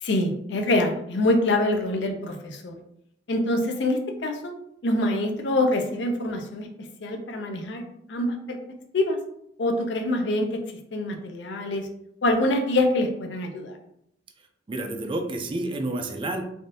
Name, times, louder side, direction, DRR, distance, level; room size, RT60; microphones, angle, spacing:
voice 1, 0.0-2.8 3.3-4.6 4.8-6.7 7.0-7.8 8.1-8.6 8.9-9.2 9.6-10.6 10.9-11.9 12.2-13.8, left 1 dB, 70° left, 4 dB, 0.5 m, -25 dB
voice 2, 14.7-16.4, right 2 dB, 30° right, 5 dB, 0.4 m, -29 dB
3.4 x 2.5 x 2.6 m, 0.74 s
head